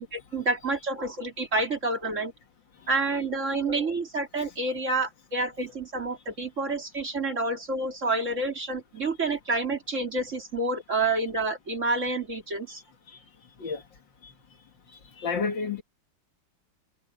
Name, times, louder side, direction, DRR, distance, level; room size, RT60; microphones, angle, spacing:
voice 1, 0.1-2.3 2.9-12.8, right 2 dB, 35° right, 3.0 m, -28 dB
voice 2, 15.2-15.8, left 5 dB, 60° left, 2.3 m, -29 dB
omnidirectional pair, 2.3 m